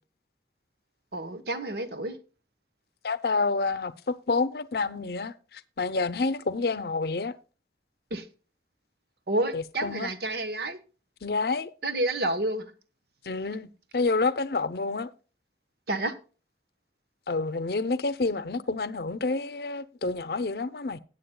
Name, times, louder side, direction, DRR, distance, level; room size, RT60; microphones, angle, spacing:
voice 1, 1.1-2.2 8.1-8.3 9.3-10.8 11.8-12.7 15.9-16.1, right 1 dB, 65° right, 1.1 m, -29 dB
voice 2, 3.0-7.4 9.5-10.1 11.2-11.7 13.2-15.1 17.3-21.0, left 3 dB, 60° left, 0.6 m, -28 dB
17.0 x 8.3 x 2.2 m
head